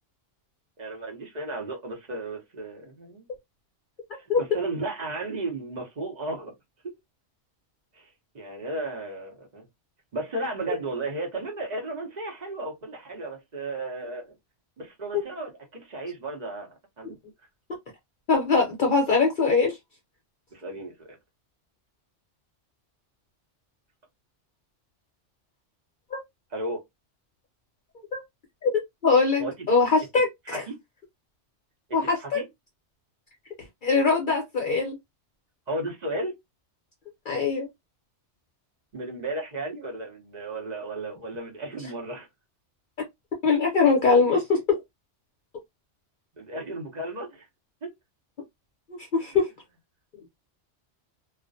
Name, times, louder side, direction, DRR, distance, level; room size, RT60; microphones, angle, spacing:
voice 1, 0.8-3.3 4.1-6.5 6.8-6.9 7.9-8.1 8.3-9.7 10.1-14.3 14.8-17.2 20.5-21.2 26.5-26.8 29.4-29.7 30.5-30.8 31.9-32.4 35.7-36.3 38.9-42.3 46.4-47.5 47.8-47.9 49.2-49.3, right 2 dB, 40° right, 0.8 m, -34 dB
voice 2, 18.3-19.8 26.1-26.2 28.1-28.2 28.6-28.7 29.0-30.6 31.9-32.4 33.8-35.0 37.3-37.7 43.4-44.8 48.9-49.5, left 4 dB, 55° left, 0.7 m, -22 dB
2.3 x 2.1 x 2.5 m
omnidirectional pair, 1.2 m